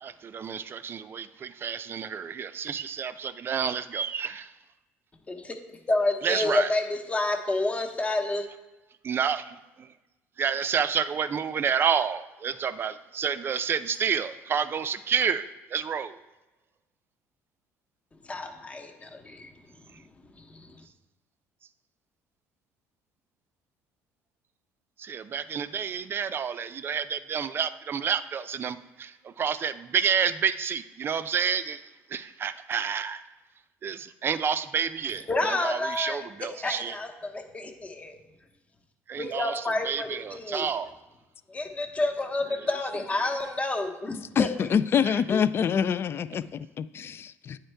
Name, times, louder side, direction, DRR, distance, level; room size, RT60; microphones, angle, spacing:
voice 1, 0.0-4.5 6.2-6.7 9.0-9.9 10.4-16.2 25.0-31.8 32.1-33.2 33.8-36.9 39.1-40.9 45.0-45.1, right 7 dB, 40° right, 12 dB, 0.4 m, -29 dB
voice 2, 5.9-8.5 18.2-19.5 19.9-20.0 20.4-20.8 35.3-36.3 36.5-38.2 39.2-40.7 41.5-44.5 45.3-45.4, left 2 dB, 25° left, 4 dB, 0.9 m, -29 dB
voice 3, 44.4-47.6, left 7 dB, 40° left, 15 dB, 0.3 m, -26 dB
8.9 x 4.4 x 3.4 m, 1.1 s
supercardioid pair, 80°, 6 cm